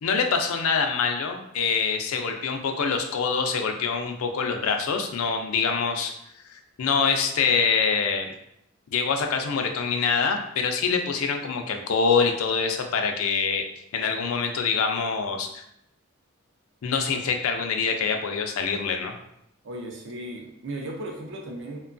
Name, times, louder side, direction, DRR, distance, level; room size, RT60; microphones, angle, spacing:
voice 1, 0.0-6.1 6.5-8.3 8.9-13.6 13.9-15.6 16.8-19.1, left 5 dB, 75° left, 5 dB, 0.4 m, -25 dB
voice 2, 19.6-21.9, right 1 dB, 55° right, 1 dB, 0.5 m, -36 dB
2.9 x 2.2 x 2.5 m, 0.78 s
head